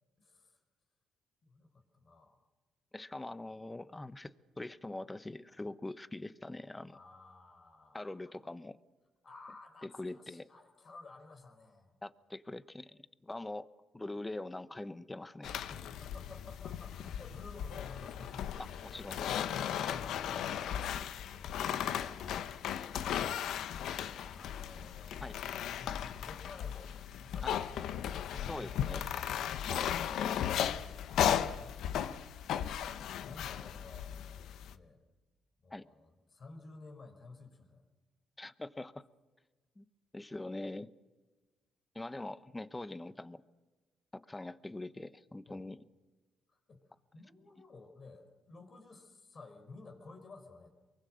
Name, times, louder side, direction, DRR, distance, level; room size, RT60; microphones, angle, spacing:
voice 1, 0.2-0.6 1.4-2.4 6.9-8.3 9.2-11.9 15.7-18.9 19.5-22.6 24.0-25.5 25.7-26.9 27.2-30.0 30.5-32.5 33.2-35.0 35.6-37.8 45.5-45.7 46.5-46.8 47.1-50.7, left 3 dB, 40° left, 5 dB, 4.8 m, -54 dB
voice 2, 2.9-7.0 7.9-8.8 9.8-10.5 12.0-13.7 13.9-15.6 18.8-19.5 25.2-25.4 27.4-27.6 28.5-29.0 29.7-30.4 35.7-35.8 38.4-39.0 39.8-39.9 40.1-40.9 41.9-43.4 44.1-45.8, left 2 dB, 15° left, 14 dB, 1.0 m, -43 dB
sound 1, 15.4-34.7, left 9 dB, 80° left, 0.9 m, -36 dB
24.0 x 23.0 x 6.4 m, 1.3 s
cardioid pair, 90°, 0 cm